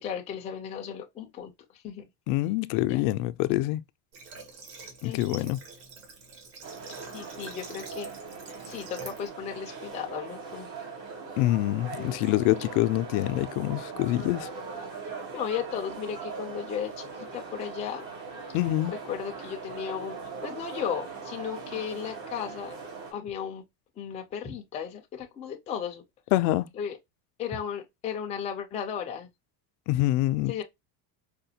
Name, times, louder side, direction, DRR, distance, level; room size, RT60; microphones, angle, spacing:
voice 1, 0.0-1.5 1.8-2.1 2.8-3.0 5.0-5.5 7.1-8.1 8.6-10.7 11.9-12.2 12.5-12.6 15.3-18.0 18.9-20.2 20.4-22.7 23.1-23.6 24.0-26.0 26.8-27.0 27.4-29.3 30.5-30.6, left 8 dB, 15° left, 0.3 m, -35 dB
voice 2, 2.3-3.8 5.0-5.6 11.4-14.5 18.5-19.0 26.3-26.7 29.9-30.6, left 16 dB, 75° left, 0.5 m, -26 dB
Water / Water tap faucet, 4.1-9.3, right 4 dB, 65° right, 1.6 m, -46 dB
sound 1, 6.6-23.1, right 5 dB, 85° right, 2.0 m, -40 dB
5.0 x 2.2 x 2.7 m
cardioid pair, 170°, 48 cm